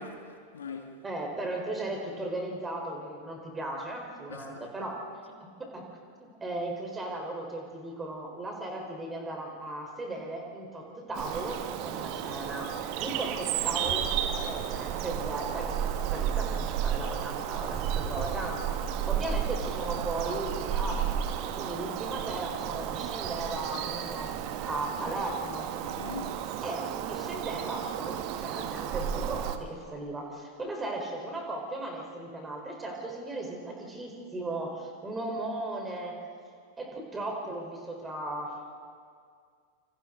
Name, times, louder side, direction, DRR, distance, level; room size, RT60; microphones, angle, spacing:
voice 1, 0.0-1.0 4.3-4.9 25.8-26.4, left 4 dB, 65° left, 3 dB, 2.1 m, -42 dB
voice 2, 1.0-5.0 5.4-5.9 6.2-15.8 16.1-21.2 21.5-24.3 24.6-25.7 26.6-36.2 36.8-38.8, right 2 dB, 15° right, 1 dB, 4.5 m, -37 dB
Bird vocalization bird call bird song, 11.1-29.6, right 9 dB, 45° right, 1.4 m, -32 dB
28.5 x 27.5 x 4.0 m, 2.2 s
figure-of-eight pair, 90°, 0 cm